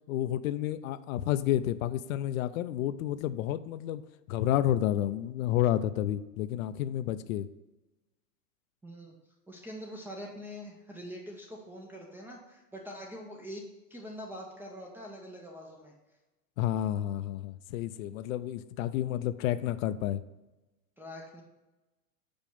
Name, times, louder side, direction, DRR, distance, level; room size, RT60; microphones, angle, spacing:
voice 1, 0.1-4.0 4.3-7.5 16.6-20.2, left 12 dB, 60° left, 14 dB, 0.5 m, -30 dB
voice 2, 8.8-9.1 9.5-13.6 13.9-15.9 21.0-21.4, equal, 5° right, -3 dB, 0.3 m, -44 dB
5.2 x 4.5 x 5.3 m, 1.1 s
hypercardioid pair, 115°, 46 cm